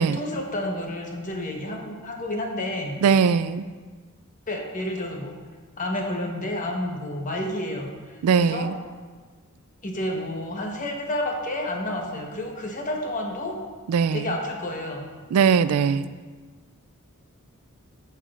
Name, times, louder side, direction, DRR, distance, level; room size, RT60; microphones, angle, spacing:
voice 1, 0.0-3.0 4.5-5.4 5.8-8.7 9.8-13.6 14.1-15.1, left 1 dB, 35° left, 1 dB, 1.1 m, -30 dB
voice 2, 3.0-3.6 8.2-8.7 13.9-14.3 15.3-16.1, right 6 dB, 80° right, 15 dB, 0.3 m, -20 dB
13.0 x 6.8 x 2.5 m, 1.4 s
head